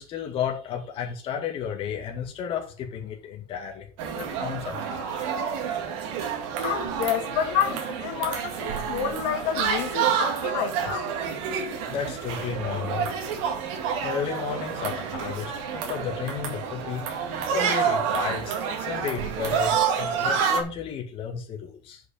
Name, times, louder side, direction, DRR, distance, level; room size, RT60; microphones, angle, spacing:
voice 1, 0.0-3.9 4.1-5.0 11.9-13.2 13.6-13.7 14.0-17.0 17.5-22.0, left 7 dB, 35° left, 2.0 m, -33 dB
sound 1, 4.0-20.6, right 7 dB, 85° right, 2.0 m, -28 dB
voice 2, 6.6-11.1, left 8 dB, 75° left, 2.5 m, -29 dB
6.4 x 5.4 x 6.8 m
cardioid pair, 170°, 15 cm